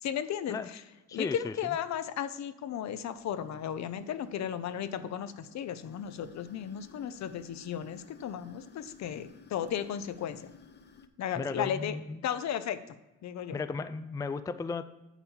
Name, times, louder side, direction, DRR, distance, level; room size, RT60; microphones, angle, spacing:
voice 1, 0.0-0.8 1.1-10.5 11.2-12.0 12.2-12.8 13.2-13.6, left 9 dB, 65° left, 12 dB, 0.7 m, -35 dB
voice 2, 1.1-1.5 11.4-12.3 13.5-14.8, left 4 dB, 10° left, 12 dB, 0.3 m, -35 dB
sound 1, 2.9-11.1, left 6 dB, 35° left, 0.8 m, -56 dB
8.2 x 4.3 x 7.2 m, 1.0 s
cardioid pair, 90°, 30 cm